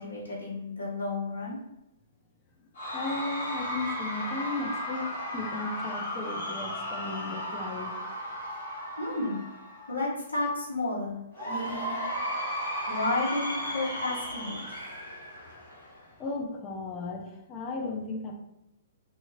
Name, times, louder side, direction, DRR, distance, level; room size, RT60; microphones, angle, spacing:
voice 1, 0.0-1.6 9.0-9.4 9.9-11.2 11.5-12.0 12.9-14.6, left 2 dB, 85° left, -4 dB, 0.9 m, -32 dB
Cheering / Crowd, 2.7-10.1 11.3-16.1, equal, 60° left, 1.3 m, -35 dB
voice 2, 2.9-7.9 16.2-18.3, left 3 dB, 25° left, 1 dB, 0.4 m, -35 dB
2.6 x 2.4 x 2.9 m, 0.84 s
figure-of-eight pair, 120°, 0 cm